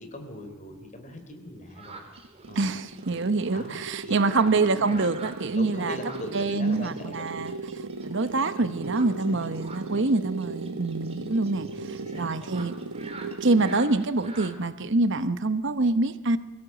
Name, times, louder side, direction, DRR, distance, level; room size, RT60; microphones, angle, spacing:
voice 1, 0.0-2.0 2.5-2.7 3.5-5.3 5.5-7.3 8.6-9.0 9.3-10.1 11.6-12.7, left 1 dB, 35° left, 6 dB, 3.5 m, -42 dB
sound 1, 1.7-14.5, right 3 dB, 30° right, 3.0 m, -47 dB
sound 2, 2.2-13.9, right 3 dB, 85° right, 1.0 m, -37 dB
voice 2, 2.5-6.0 6.3-12.7 13.4-16.4, right 3 dB, 60° right, 12 dB, 0.9 m, -26 dB
23.0 x 17.0 x 8.0 m, 1.2 s
head